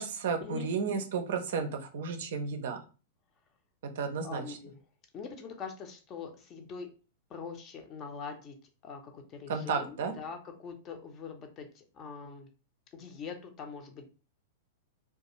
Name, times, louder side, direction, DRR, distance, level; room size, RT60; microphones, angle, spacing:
voice 1, 0.0-2.8 4.0-4.6 9.5-10.1, right 5 dB, 55° right, 6 dB, 0.4 m, -33 dB
voice 2, 4.2-4.8 5.1-6.9 7.3-8.6 8.8-12.5 12.9-14.1, left 5 dB, 30° left, 5 dB, 0.6 m, -43 dB
2.3 x 2.3 x 2.9 m, 0.34 s
figure-of-eight pair, 95°, 0 cm